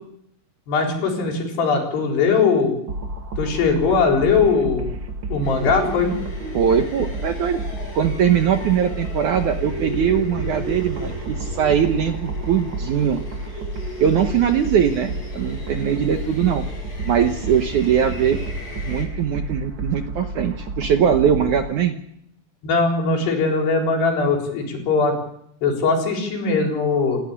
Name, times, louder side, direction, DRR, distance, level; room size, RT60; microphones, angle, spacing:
voice 1, 0.7-2.8 3.4-4.9 5.3-6.1 22.6-25.2 25.6-27.2, left 4 dB, 75° left, 1 dB, 6.1 m, -20 dB
sound 1, 2.9-21.7, right 2 dB, 35° right, 2.0 m, -31 dB
sound 2, 5.4-19.0, right 1 dB, 30° left, 7.5 m, -35 dB
voice 2, 6.5-7.6 7.9-13.2 14.0-16.6 17.1-18.4 18.9-22.0, right 8 dB, 65° right, 6 dB, 2.1 m, -21 dB
29.0 x 12.5 x 10.0 m, 0.75 s
omnidirectional pair, 4.8 m